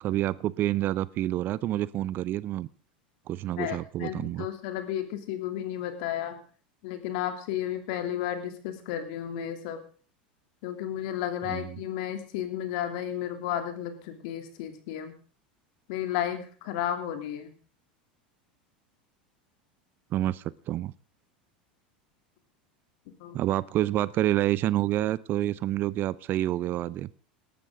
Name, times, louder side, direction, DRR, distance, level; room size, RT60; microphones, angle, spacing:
voice 1, 0.0-2.7 3.3-4.5 11.5-11.8 20.1-20.9 23.3-27.1, right 14 dB, 45° right, 20 dB, 0.7 m, -28 dB
voice 2, 3.6-6.4 6.8-9.8 10.6-15.1 15.9-17.5 23.1-23.4, left 11 dB, 65° left, 7 dB, 2.9 m, -33 dB
18.5 x 12.0 x 3.8 m, 0.41 s
hypercardioid pair, 85°, 5 cm